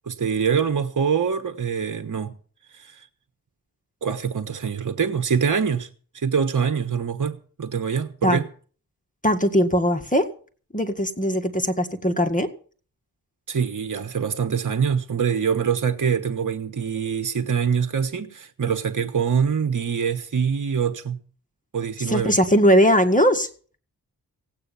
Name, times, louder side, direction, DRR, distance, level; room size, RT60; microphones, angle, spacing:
voice 1, 0.0-2.3 2.7-3.1 4.0-5.9 6.1-8.4 13.5-21.2 21.7-22.4, right 6 dB, 55° right, 1.3 m, -24 dB
voice 2, 9.2-10.3 10.7-12.5 22.1-23.5, equal, 20° left, 1.8 m, -19 dB
17.0 x 8.8 x 7.0 m
cardioid pair, 55°, 37 cm